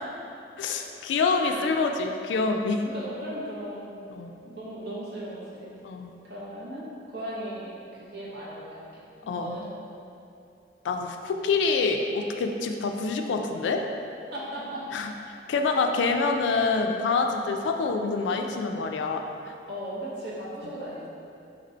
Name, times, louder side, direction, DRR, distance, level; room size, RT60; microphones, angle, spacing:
voice 1, 0.6-2.8 4.1-4.3 5.8-6.1 9.3-9.6 10.8-13.8 14.9-19.5, left 4 dB, 80° left, 4 dB, 0.3 m, -26 dB
voice 2, 1.4-1.8 2.9-4.0 4.4-5.8 6.2-7.7 8.0-9.7 14.3-14.8 19.7-21.1, right 1 dB, 60° right, -7 dB, 0.7 m, -37 dB
2.9 x 2.6 x 4.2 m, 2.6 s
head